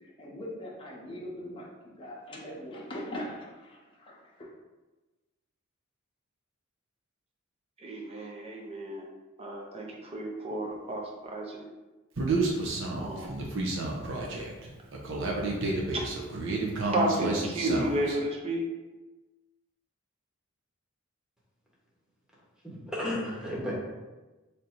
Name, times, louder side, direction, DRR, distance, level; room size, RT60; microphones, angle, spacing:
voice 1, 0.0-4.5, left 1 dB, 25° left, -4 dB, 0.7 m, -41 dB
voice 2, 7.8-9.1 9.4-11.7 12.9-13.4 15.9-16.0 16.8-18.7, right 1 dB, 30° right, 0 dB, 0.5 m, -32 dB
Human voice, 12.2-18.2, right 3 dB, 65° right, 0.7 m, -30 dB
voice 3, 22.6-23.7, left 1 dB, 5° right, -6 dB, 1.0 m, -33 dB
3.3 x 2.6 x 4.3 m, 1.2 s
head